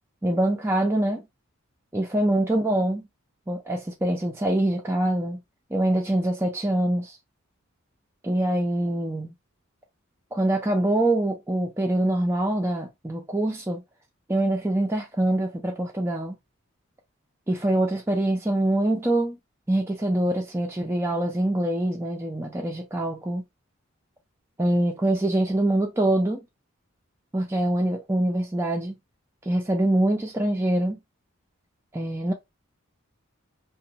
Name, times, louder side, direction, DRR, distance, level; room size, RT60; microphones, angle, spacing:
voice 1, 0.2-1.2 1.9-3.0 3.5-5.4 5.7-7.2 8.2-9.3 10.3-13.8 14.3-16.4 17.5-19.4 19.7-23.4 24.6-26.4 27.3-29.0 29.4-31.0 31.9-32.3, right 1 dB, 10° right, 0.3 m, -24 dB
2.9 x 2.1 x 2.6 m
head